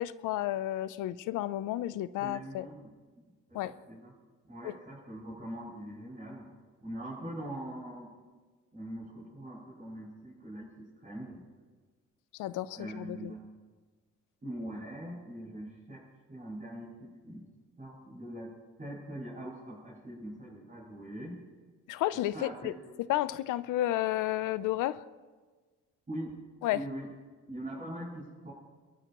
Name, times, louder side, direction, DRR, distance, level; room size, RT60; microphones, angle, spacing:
voice 1, 0.0-2.6 3.5-3.7 4.6-4.7 12.4-13.3 21.9-22.7 23.1-25.0 26.6-26.8, left 14 dB, 85° left, 15 dB, 0.6 m, -32 dB
voice 2, 2.2-2.9 3.5-4.1 4.4-6.5 6.8-8.1 8.7-11.4 12.7-13.4 14.4-17.5 17.8-18.5 18.8-21.4 22.1-22.7 26.1-26.3 26.7-27.1 27.5-28.5, right 1 dB, 25° right, -8 dB, 6.5 m, -42 dB
29.0 x 13.0 x 3.0 m, 1.4 s
cardioid pair, 90°, 30 cm